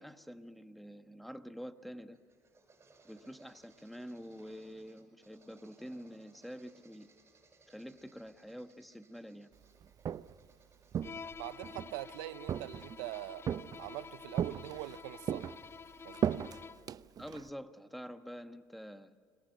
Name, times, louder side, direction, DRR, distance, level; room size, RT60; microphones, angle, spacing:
voice 1, 0.0-2.2 3.0-7.1 7.7-9.5 17.2-19.2, equal, ahead, 1.4 m, -47 dB
sound 1, 1.8-11.4, right 3 dB, 30° right, 7.1 m, -66 dB
Walk footsteps, 9.8-10.5 10.9-11.9 12.5-13.1 13.5-14.0 14.4-15.0 15.3-17.5, right 8 dB, 45° right, 0.7 m, -36 dB
Bowed string instrument, 11.0-17.0, left 5 dB, 30° left, 0.5 m, -49 dB
voice 2, 11.4-13.4 13.8-15.5 16.0-16.4, right 19 dB, 85° right, 0.6 m, -43 dB
29.5 x 22.0 x 6.6 m
supercardioid pair, 75°, 9 cm